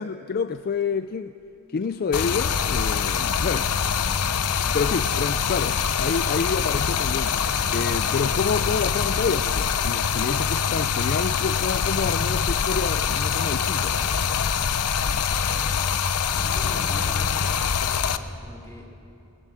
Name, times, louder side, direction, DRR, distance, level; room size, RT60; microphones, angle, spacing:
voice 1, 0.0-1.4 1.7-3.7 4.7-7.4 7.7-13.9, left 5 dB, 45° left, 12 dB, 0.4 m, -28 dB
sound 1, 0.5-17.6, left 3 dB, 60° left, 2.3 m, -47 dB
Stream, 2.1-18.2, left 7 dB, 90° left, 0.7 m, -24 dB
voice 2, 3.4-3.9 16.4-18.9, equal, 15° left, -2 dB, 3.2 m, -42 dB
20.5 x 20.0 x 7.3 m, 2.7 s
head